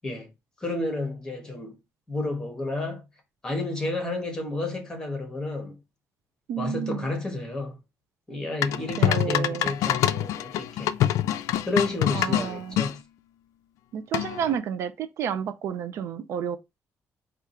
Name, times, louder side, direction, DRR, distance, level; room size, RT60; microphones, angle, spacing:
voice 1, 0.6-1.8 2.1-3.0 3.4-5.8 6.6-7.8 8.3-10.9 11.7-13.0, left 2 dB, 10° left, 1.2 m, -31 dB
voice 2, 6.5-7.1 9.0-9.7 12.1-12.8 13.9-16.6, right 8 dB, 60° right, 0.4 m, -30 dB
sound 1, 8.6-12.9 14.1-14.6, left 12 dB, 85° left, 0.3 m, -25 dB
4.8 x 2.4 x 4.2 m
cardioid pair, 175°, 5 cm